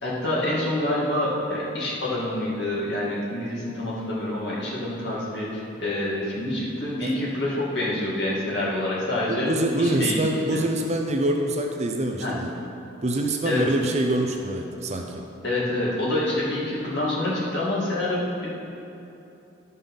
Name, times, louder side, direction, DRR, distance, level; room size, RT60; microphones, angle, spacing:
voice 1, 0.0-9.5 9.8-10.2 10.5-10.6 12.2-12.3 13.4-13.7 15.4-18.5, left 1 dB, 55° left, -7 dB, 2.4 m, -27 dB
voice 2, 9.3-12.5 13.0-15.2, right 1 dB, 35° right, 3 dB, 0.6 m, -25 dB
11.5 x 5.5 x 5.6 m, 2.9 s
head